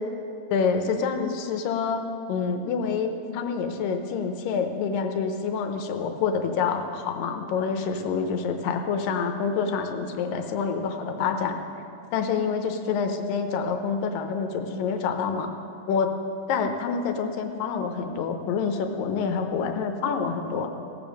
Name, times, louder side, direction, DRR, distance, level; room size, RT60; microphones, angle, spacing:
voice 1, 0.5-2.0 2.3-11.6 12.1-15.5 15.9-16.1 16.5-20.7, left 5 dB, 85° left, 6 dB, 2.5 m, -27 dB
16.5 x 7.0 x 6.3 m, 2.8 s
omnidirectional pair, 3.9 m